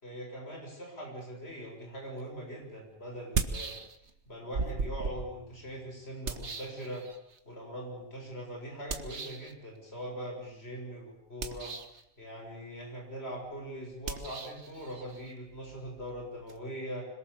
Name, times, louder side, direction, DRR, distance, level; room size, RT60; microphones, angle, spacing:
voice 1, 0.0-3.8 4.3-7.0 7.5-11.7 12.2-17.1, equal, 70° left, -1 dB, 7.1 m, -41 dB
sound 1, 2.2-2.3 3.2-4.2 4.5-7.4 8.9-9.5 11.3-12.0 14.0-16.6, right 4 dB, 90° right, 1.8 m, -37 dB
26.0 x 22.5 x 7.1 m, 0.78 s
omnidirectional pair, 1.1 m